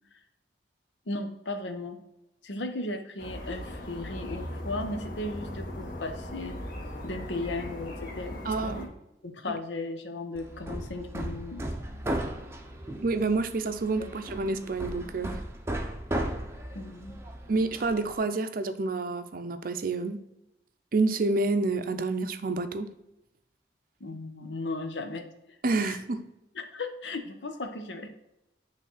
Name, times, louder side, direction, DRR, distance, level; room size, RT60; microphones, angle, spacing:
voice 1, 1.1-2.0 2.4-6.6 7.0-8.9 9.2-11.6 14.0-14.1 16.7-17.2 24.0-25.3 25.8-26.0 26.5-28.1, left 2 dB, 90° left, 0.8 m, -36 dB
sound 1, 3.2-8.9, left 1 dB, 55° left, 1.9 m, -38 dB
voice 2, 8.5-8.9 9.5-9.6 13.0-15.4 17.5-20.2 20.9-22.9 25.6-26.3, right 3 dB, 55° right, 0.5 m, -28 dB
Hammer, 10.3-18.2, right 1 dB, 15° right, 0.6 m, -36 dB
8.5 x 3.2 x 4.1 m
head